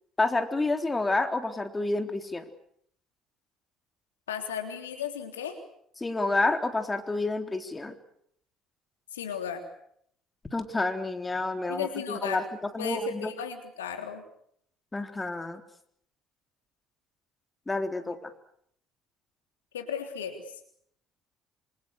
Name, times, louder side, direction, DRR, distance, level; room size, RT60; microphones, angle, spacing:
voice 1, 0.2-2.5 6.0-8.0 10.5-13.3 14.9-15.6 17.7-18.3, left 2 dB, 20° left, 7 dB, 3.8 m, -29 dB
voice 2, 4.3-5.6 9.1-9.6 11.7-12.5 12.8-14.2 19.7-20.4, left 8 dB, 85° left, 6 dB, 3.4 m, -35 dB
27.5 x 27.0 x 6.8 m, 0.68 s
hypercardioid pair, 55°, 0 cm